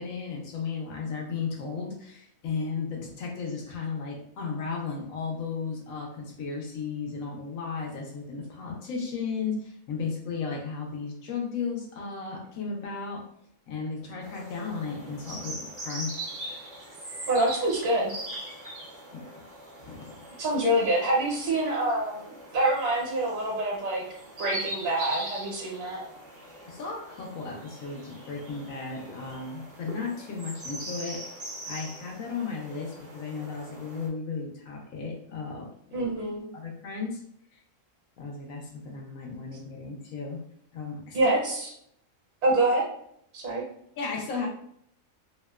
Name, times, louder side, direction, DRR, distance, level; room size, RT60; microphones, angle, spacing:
voice 1, 0.0-13.3 13.7-16.1 19.1-19.3 19.8-20.3 26.7-31.2 31.6-35.7 35.9-36.0 36.5-37.2 37.5-37.6 38.2-40.4 40.7-41.2 44.0-44.5, left 5 dB, 85° left, -1 dB, 1.0 m, -35 dB
sound 1, 14.2-34.1, right 1 dB, 50° right, 0.5 m, -41 dB
voice 2, 17.3-18.1 20.4-24.0 24.4-26.0 35.9-36.5 41.1-41.7 42.4-42.8 43.3-43.6, right 1 dB, 70° right, -3 dB, 1.1 m, -26 dB
2.8 x 2.0 x 2.2 m, 0.70 s
omnidirectional pair, 1.4 m